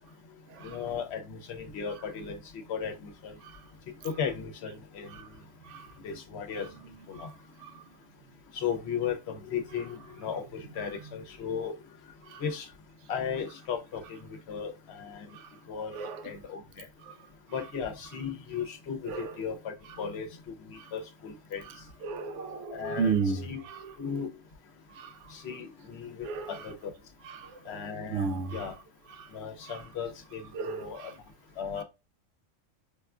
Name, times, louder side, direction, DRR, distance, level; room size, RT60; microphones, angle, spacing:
voice 1, 0.6-3.3 4.0-5.1 6.0-6.7 7.1-7.3 8.5-11.7 12.4-12.7 13.1-14.0 14.3-15.3 15.7-16.0 16.2-16.9 17.5-20.3 20.7-21.6 22.7-23.1 23.4-23.6 24.0-24.3 25.3-26.9 27.7-28.7 29.3-31.1 31.6-31.8, left 7 dB, 60° left, 0.9 m, -36 dB
voice 2, 15.9-16.3 17.0-17.1 17.5-17.7 19.0-19.5 19.8-20.0 20.8-20.9 21.6-24.0 24.9-25.2 26.2-26.7 27.2-27.8 28.1-28.8 29.1-29.3 29.6-29.9 30.5-31.1, right 5 dB, 70° right, 0.9 m, -35 dB
4.8 x 2.3 x 2.3 m
omnidirectional pair, 1.3 m